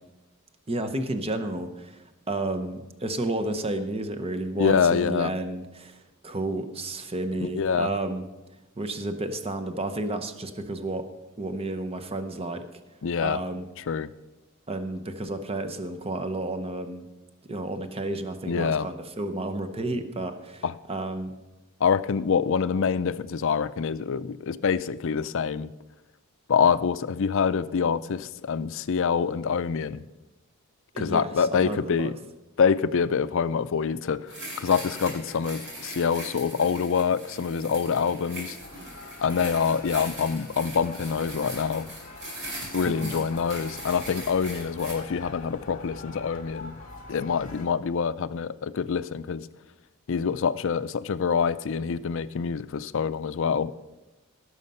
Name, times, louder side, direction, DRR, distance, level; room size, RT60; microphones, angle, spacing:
voice 1, 0.7-8.2 8.8-11.0 11.4-12.6 13.2-13.6 14.7-17.0 17.5-21.4 30.9-32.1 42.9-43.1, right 2 dB, 25° right, 8 dB, 0.8 m, -31 dB
voice 2, 4.5-5.3 7.4-7.9 13.0-13.4 13.9-14.1 18.5-18.9 20.6-20.7 21.8-25.7 26.5-30.0 31.0-32.1 32.6-38.6 39.2-41.9 42.7-46.7 47.1-49.5 50.1-53.7, left 6 dB, 60° left, 14 dB, 0.4 m, -26 dB
sound 1, 34.3-44.9, right 1 dB, 60° right, 4.5 m, -40 dB
sound 2, 38.6-47.7, left 3 dB, 40° left, 2.2 m, -44 dB
17.0 x 6.5 x 5.5 m, 1.0 s
head